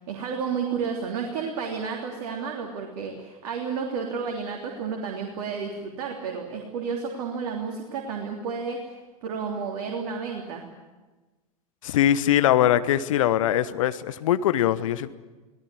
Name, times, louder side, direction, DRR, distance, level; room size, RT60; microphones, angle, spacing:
voice 1, 0.1-10.6, right 5 dB, 50° right, 1 dB, 3.4 m, -31 dB
voice 2, 11.8-15.1, left 11 dB, 60° left, 14 dB, 1.2 m, -22 dB
25.0 x 18.0 x 9.7 m, 1.2 s
figure-of-eight pair, 85°, 20 cm